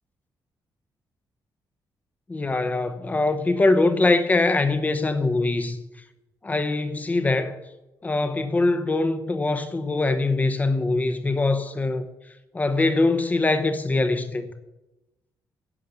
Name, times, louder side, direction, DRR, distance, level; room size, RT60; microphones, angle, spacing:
voice 1, 2.3-5.8 6.4-7.6 8.0-12.1 12.5-14.5, left 2 dB, 20° left, 0.9 m, -23 dB
11.0 x 7.5 x 8.4 m
wide cardioid pair, 150°, 8 cm